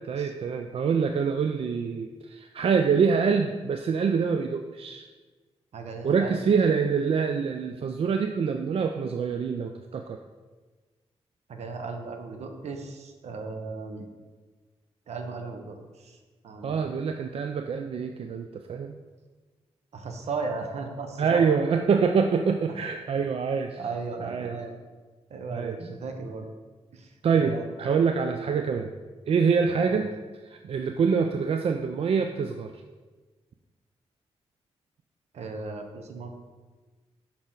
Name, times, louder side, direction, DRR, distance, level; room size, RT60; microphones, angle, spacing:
voice 1, 0.0-5.1 6.0-10.2 16.6-19.0 21.2-23.8 24.2-24.5 25.5-25.8 27.2-28.9 29.3-30.1 30.4-32.7, right 6 dB, 60° right, 5 dB, 0.4 m, -25 dB
voice 2, 5.7-6.4 11.5-14.1 15.1-16.2 16.4-16.9 19.9-21.6 23.1-23.2 23.8-24.7 25.3-26.5 26.9-27.1 27.4-27.7 29.9-30.1 35.3-36.3, right 4 dB, 75° right, 5 dB, 0.9 m, -36 dB
6.3 x 5.8 x 3.8 m, 1.3 s
cardioid pair, 95°, 11 cm